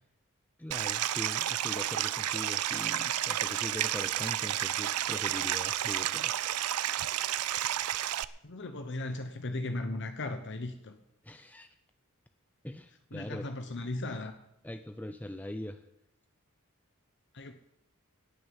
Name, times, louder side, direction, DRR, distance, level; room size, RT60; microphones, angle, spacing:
voice 1, 0.6-6.3 11.2-11.7 12.6-13.5 14.6-15.9, left 1 dB, 5° left, 8 dB, 0.5 m, -41 dB
Stream, 0.7-8.2, right 12 dB, 90° right, 0.5 m, -31 dB
voice 2, 8.4-11.0 13.1-14.4 17.3-17.5, left 2 dB, 55° left, 7 dB, 1.0 m, -37 dB
17.5 x 6.3 x 9.8 m, 0.81 s
head